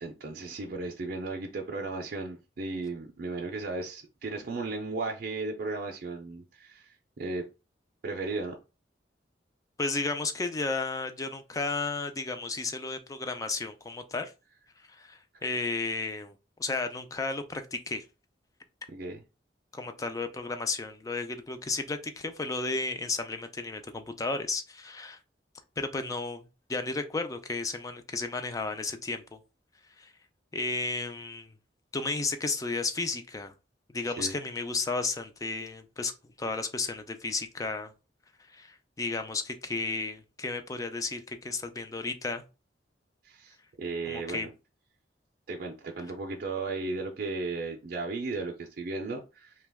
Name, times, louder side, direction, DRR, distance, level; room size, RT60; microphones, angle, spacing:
voice 1, 0.0-6.9 7.2-7.5 8.0-8.5 18.9-19.2 34.1-34.4 43.2-44.5 45.5-49.5, right 3 dB, 55° right, 0.4 m, -35 dB
voice 2, 9.8-14.3 14.9-16.3 16.6-18.0 19.7-25.2 25.8-29.4 30.0-30.1 30.5-31.5 31.9-33.5 33.9-36.1 36.4-37.9 38.5-42.4 44.1-44.5, left 3 dB, 20° left, 0.3 m, -33 dB
2.9 x 2.2 x 3.3 m
head